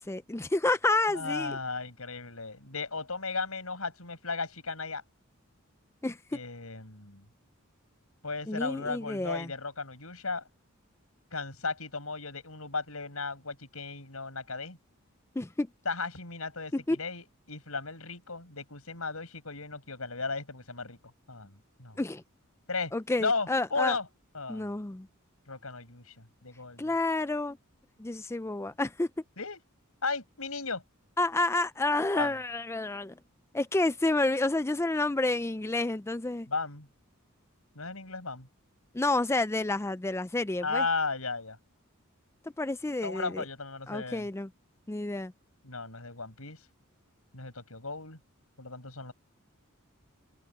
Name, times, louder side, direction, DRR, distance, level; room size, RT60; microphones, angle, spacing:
voice 1, 0.0-1.6 6.0-6.4 8.5-9.5 15.4-15.7 16.7-17.0 22.0-22.2 22.9-24.0 24.5-25.1 26.8-27.6 28.0-29.1 31.2-33.2 33.5-36.5 38.9-40.9 42.6-43.4 43.9-44.5 44.9-45.3, left 2 dB, 15° left, 0.4 m, -29 dB
voice 2, 1.1-5.0 6.3-7.2 8.2-10.4 11.3-14.8 15.8-21.0 21.3-22.0 22.7-22.9 23.2-24.1 24.3-24.7 25.5-26.9 29.4-29.6 30.0-30.8 32.2-32.3 36.5-36.9 37.7-38.5 40.6-41.6 43.0-44.3 45.6-46.6 47.3-48.2 48.6-49.1, left 4 dB, 85° left, 6.8 m, -35 dB
head